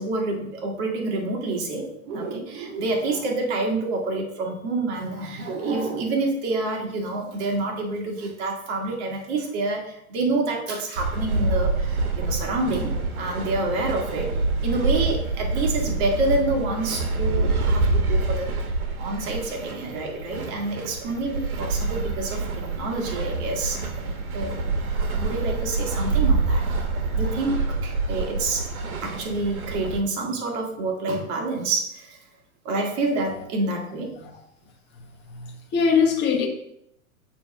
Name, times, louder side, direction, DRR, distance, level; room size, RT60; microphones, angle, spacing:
voice 1, 0.0-18.5 19.0-23.8 24.3-24.6 25.1-26.7 27.2-28.7 29.0-32.2 32.7-34.1, right 2 dB, 45° right, 1 dB, 1.7 m, -28 dB
sound 1, 11.0-30.0, right 3 dB, 80° right, 1.1 m, -26 dB
voice 2, 35.3-36.5, left 6 dB, 25° left, 2 dB, 1.2 m, -22 dB
6.7 x 3.1 x 5.0 m, 0.77 s
hypercardioid pair, 130°, 43 cm